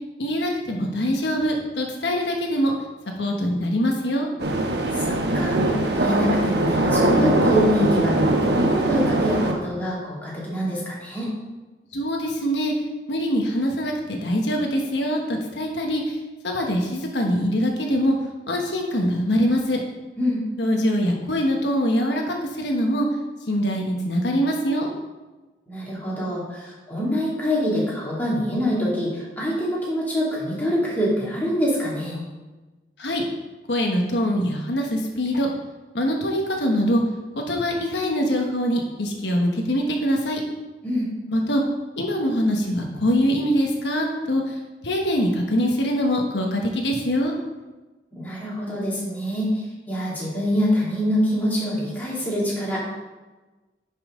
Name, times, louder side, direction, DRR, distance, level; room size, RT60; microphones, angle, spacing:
voice 1, 0.2-2.7 3.2-4.3 11.9-12.7 13.1-16.2 16.4-18.2 18.5-19.8 20.6-23.1 23.5-24.9 33.0-33.2 33.7-35.5 35.9-37.0 37.4-40.4 41.3-41.6 42.0-47.4, equal, 80° left, 1 dB, 1.3 m, -23 dB
sound 1, 4.4-9.5, right 1 dB, 75° right, 1.1 m, -21 dB
voice 2, 5.0-11.3 20.2-20.4 25.7-32.2 40.8-41.1 48.1-52.8, equal, 10° left, -7 dB, 2.5 m, -25 dB
10.5 x 5.7 x 3.8 m, 1.2 s
head